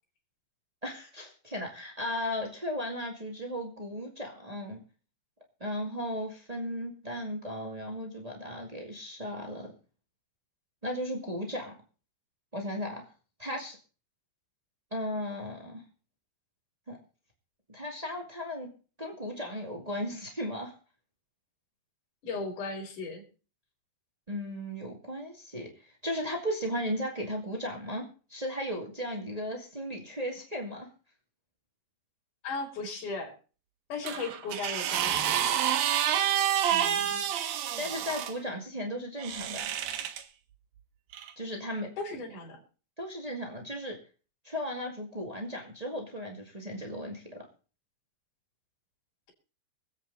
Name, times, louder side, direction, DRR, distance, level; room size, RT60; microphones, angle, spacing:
voice 1, 0.8-4.8 5.6-9.7 10.8-11.7 12.5-13.0 13.4-13.8 14.9-15.8 16.9-17.0 17.7-18.7 19.0-20.7 24.3-30.9 36.7-37.2 37.8-39.7 41.3-41.9 43.0-44.0 44.4-47.5, equal, 45° right, 1 dB, 0.4 m, -36 dB
voice 2, 22.2-23.2 32.4-33.3 33.9-35.4 42.0-42.6, left 3 dB, 50° left, -1 dB, 4.1 m, -36 dB
sound 1, 34.0-38.3 39.2-40.2 41.1-41.3, right 10 dB, 70° right, 2.6 m, -28 dB
24.0 x 8.2 x 4.0 m, 0.37 s
omnidirectional pair, 5.0 m